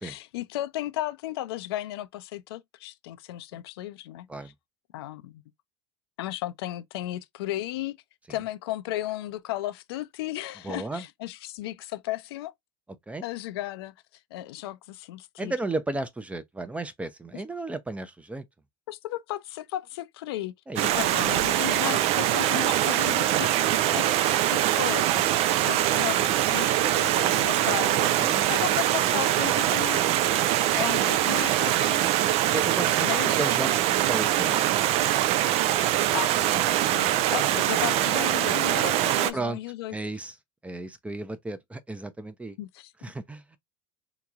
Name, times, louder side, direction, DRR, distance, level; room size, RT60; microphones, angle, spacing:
voice 1, 0.0-4.5 4.9-5.4 6.2-8.0 8.3-12.5 13.2-13.9 14.3-15.5 17.3-17.4 18.9-20.5 20.8-30.0 30.7-32.3 33.0-33.6 36.0-40.0 42.6-42.9, left 15 dB, 85° left, 0.5 m, -35 dB
voice 2, 10.6-11.0 13.1-13.2 15.4-18.4 20.7-20.9 28.2-28.4 32.5-33.1 33.4-34.7 39.3-39.6 39.9-40.3 40.6-42.6 43.0-43.6, right 2 dB, 10° right, 0.6 m, -34 dB
Stream, 20.8-39.3, right 13 dB, 55° right, 0.5 m, -23 dB
3.6 x 2.9 x 2.4 m
supercardioid pair, 100°, 13 cm